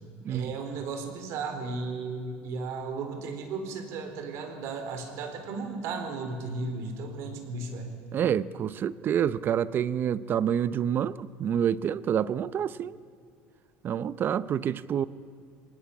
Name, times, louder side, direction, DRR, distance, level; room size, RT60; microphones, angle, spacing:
voice 1, 0.3-7.9, right 4 dB, 65° right, 4.1 m, -35 dB
voice 2, 8.1-13.0 13.8-15.1, right 9 dB, 40° right, 0.7 m, -27 dB
24.5 x 18.5 x 8.5 m
supercardioid pair, 115°, 5 cm